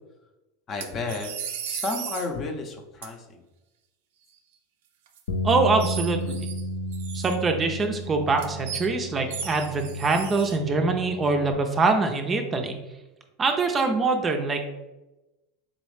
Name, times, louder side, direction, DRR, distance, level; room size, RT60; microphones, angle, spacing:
voice 1, 0.7-1.3 1.7-3.4, left 3 dB, 35° left, 3 dB, 0.7 m, -32 dB
sound 1, 0.8-2.3 3.0-3.1 5.1-5.2 5.8-6.6 6.9-7.6 8.4-8.9 9.3-10.6, right 8 dB, 75° right, 0.5 m, -35 dB
sound 2, 5.3-11.5, equal, 80° left, 0.5 m, -33 dB
voice 2, 5.4-6.5 7.1-12.7 13.4-14.7, right 3 dB, 25° right, 4 dB, 0.5 m, -24 dB
4.1 x 3.0 x 3.2 m, 1.0 s
supercardioid pair, 110°, 0 cm